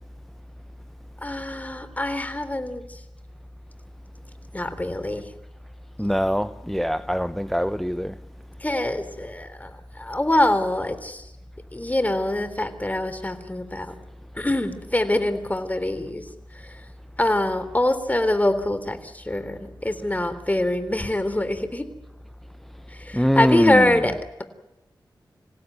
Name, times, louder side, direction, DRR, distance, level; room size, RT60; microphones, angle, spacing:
voice 1, 1.2-3.0 4.5-5.3 8.6-9.7 10.0-11.2 11.7-13.9 14.4-16.2 16.6-16.7 17.2-21.8 23.0-24.4, left 1 dB, 20° left, 3.5 m, -24 dB
voice 2, 6.0-8.1 23.1-24.0, equal, 5° left, 0.8 m, -23 dB
27.0 x 16.5 x 9.4 m
cardioid pair, 55°, 8 cm